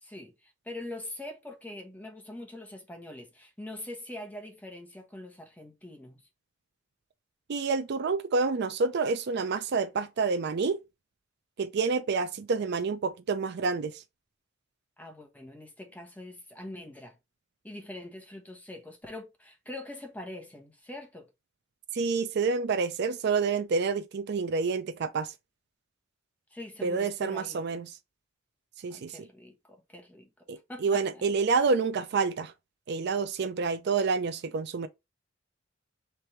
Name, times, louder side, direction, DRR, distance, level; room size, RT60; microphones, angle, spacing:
voice 1, 0.0-6.2 15.0-17.1 17.6-21.3 26.5-27.7 28.9-31.3, left 1 dB, 10° left, 1.1 m, -43 dB
voice 2, 7.5-10.8 11.6-14.0 21.9-25.3 26.8-27.9 28.8-29.3 30.5-32.5 32.9-34.9, right 4 dB, 55° right, 0.4 m, -28 dB
3.3 x 3.3 x 4.2 m
head